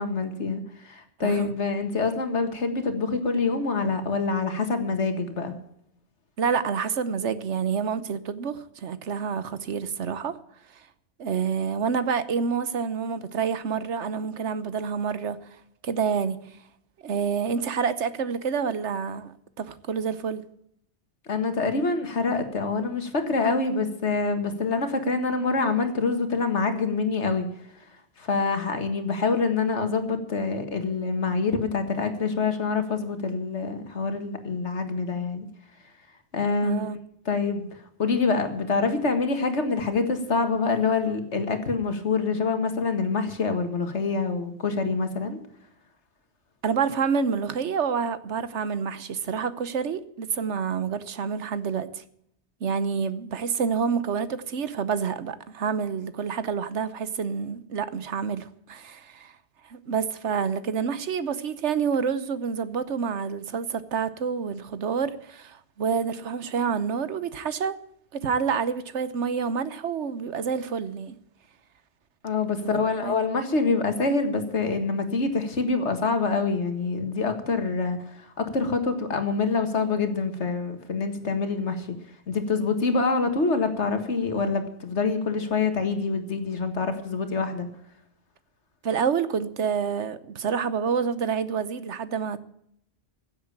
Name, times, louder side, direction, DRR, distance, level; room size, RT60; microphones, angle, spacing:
voice 1, 0.0-5.5 21.3-27.5 28.2-35.5 36.3-36.8 37.3-37.7 38.0-45.4 72.2-82.0 82.3-87.7, left 4 dB, 80° left, 2.1 m, -26 dB
voice 2, 1.2-1.5 6.4-10.4 10.7-10.9 11.2-15.4 15.8-16.6 17.0-20.4 36.6-37.0 46.6-52.0 52.6-59.3 59.6-67.7 68.1-71.2 72.6-73.2 88.8-92.4, right 6 dB, 85° right, 1.3 m, -28 dB
15.5 x 8.0 x 8.8 m
omnidirectional pair, 1.2 m